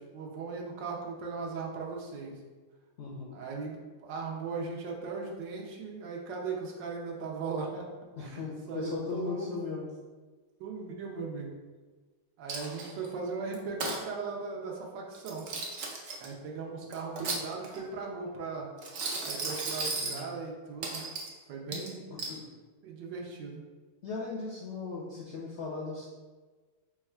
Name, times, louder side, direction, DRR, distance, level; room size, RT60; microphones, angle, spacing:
voice 1, 0.0-2.3 3.3-7.8 8.2-9.6 10.6-11.5 12.4-15.5 16.2-18.7 19.2-21.0 21.5-22.1 22.8-23.6, right 4 dB, 85° right, -1 dB, 1.4 m, -38 dB
voice 2, 3.0-3.3 8.2-9.9 20.0-20.3 21.7-22.5 24.0-26.1, left 4 dB, 75° left, -4 dB, 0.6 m, -38 dB
Coin (dropping), 12.5-13.1 13.5-14.0 15.1-16.3 16.9-17.9 18.8-20.2 20.8-21.3 21.7-22.4, right 3 dB, 65° right, 0.7 m, -35 dB
3.9 x 2.4 x 4.3 m, 1.4 s
omnidirectional pair, 1.9 m